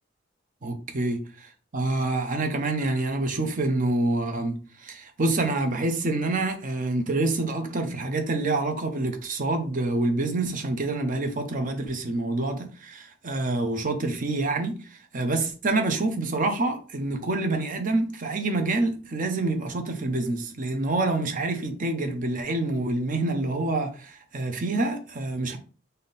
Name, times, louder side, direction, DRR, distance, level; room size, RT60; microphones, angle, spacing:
voice 1, 0.6-1.2 1.7-25.6, right 2 dB, 40° right, 0.7 m, -27 dB
3.6 x 2.7 x 4.0 m
head